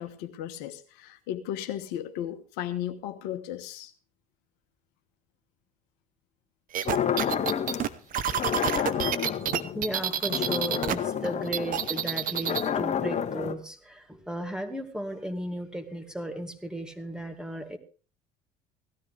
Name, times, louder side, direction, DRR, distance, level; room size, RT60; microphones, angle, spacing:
voice 1, 0.0-3.9, left 11 dB, 65° left, 7 dB, 1.3 m, -35 dB
sound 1, 6.7-10.9 11.2-12.7, right 9 dB, 50° right, 1.0 m, -28 dB
sound 2, 6.9-7.9 8.3-13.5, left 8 dB, 40° left, 1.6 m, -30 dB
voice 2, 9.7-17.8, right 1 dB, 5° right, 5 dB, 2.4 m, -35 dB
17.5 x 13.0 x 3.4 m, 0.37 s
hypercardioid pair, 65°, 18 cm